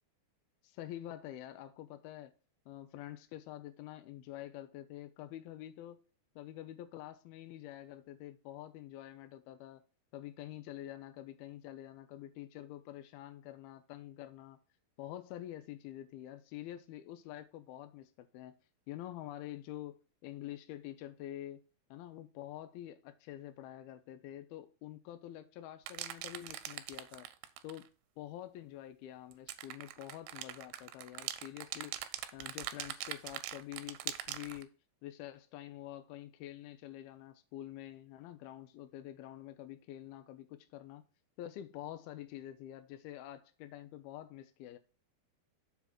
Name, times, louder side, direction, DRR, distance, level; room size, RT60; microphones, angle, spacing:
voice 1, 0.6-2.3 2.7-6.0 6.4-9.8 10.1-14.6 15.0-18.6 18.9-21.6 21.9-27.3 27.6-27.9 28.2-32.0 32.3-34.7 35.0-41.0 41.4-44.8, left 13 dB, 80° left, 2.5 m, -47 dB
sound 1, 25.9-27.9 29.3-34.6, right 13 dB, 90° right, 2.6 m, -42 dB
7.2 x 4.1 x 5.9 m
omnidirectional pair, 4.6 m